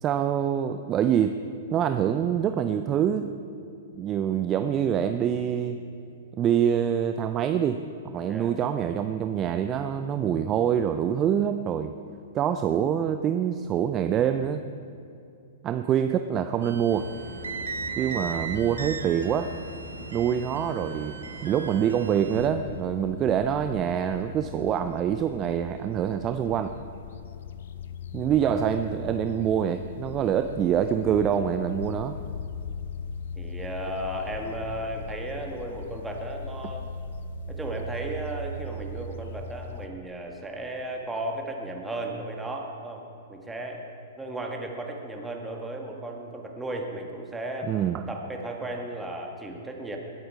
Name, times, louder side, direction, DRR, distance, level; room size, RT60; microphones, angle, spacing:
voice 1, 0.0-1.4 1.7-3.3 4.0-5.8 6.4-11.9 12.3-14.6 15.6-17.1 18.0-19.5 20.1-21.2 21.4-26.7 28.1-32.2 47.7-48.0, right 9 dB, 30° right, 9 dB, 0.5 m, -25 dB
sound 1, 16.6-22.5, right 5 dB, 75° right, 1.1 m, -38 dB
sound 2, 16.9-22.5, equal, 5° left, 3.3 m, -41 dB
sound 3, 22.3-39.9, left 4 dB, 60° left, 0.6 m, -39 dB
voice 2, 33.4-36.9 37.5-43.0 43.3-43.9 44.2-47.7 48.1-50.0, right 1 dB, 10° right, 1 dB, 1.8 m, -35 dB
20.0 x 8.7 x 4.8 m, 2.6 s
figure-of-eight pair, 110°, 0 cm